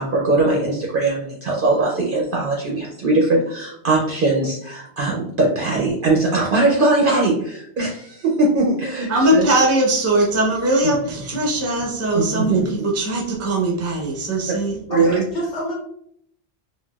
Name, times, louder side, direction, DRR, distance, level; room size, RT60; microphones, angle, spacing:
voice 1, 0.0-9.4 12.1-12.7 14.5-14.6 14.9-15.2, right 2 dB, 60° right, -2 dB, 0.6 m, -20 dB
voice 2, 9.1-14.8, right 1 dB, 20° right, -1 dB, 0.4 m, -20 dB
voice 3, 14.9-15.7, equal, 90° left, -5 dB, 1.2 m, -27 dB
3.9 x 2.2 x 2.2 m, 0.70 s
omnidirectional pair, 1.2 m